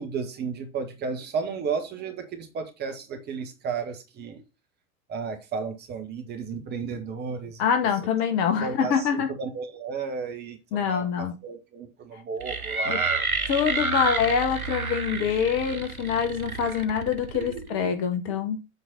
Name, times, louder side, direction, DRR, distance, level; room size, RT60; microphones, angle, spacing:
voice 1, 0.0-4.4 5.1-7.6 8.6-13.3 15.1-15.4 17.3-17.8, right 5 dB, 25° right, 1.4 m, -33 dB
voice 2, 7.6-9.3 10.7-11.3 12.9-13.0 13.5-18.6, left 7 dB, 35° left, 1.5 m, -25 dB
sound 1, 12.4-17.7, right 4 dB, 85° right, 1.0 m, -30 dB
8.1 x 3.9 x 5.2 m
figure-of-eight pair, 95°, 42 cm